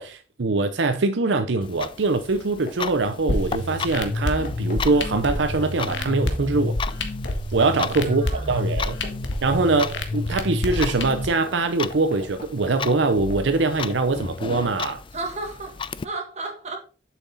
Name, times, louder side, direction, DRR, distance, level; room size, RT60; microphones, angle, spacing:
voice 1, 0.0-6.8 7.5-9.0 9.4-15.0, right 3 dB, 85° right, 0.7 m, -23 dB
Clock, 1.6-16.0, left 6 dB, 30° left, 0.3 m, -36 dB
sound 1, 2.3-6.9 7.2-7.3 7.6-9.4 9.6-14.4, left 2 dB, 50° left, 2.1 m, -41 dB
sound 2, 3.3-11.3, left 1 dB, 80° left, 1.2 m, -28 dB
voice 2, 8.0-8.6 15.1-16.8, right 3 dB, 40° right, 1.9 m, -34 dB
7.1 x 5.8 x 4.0 m
head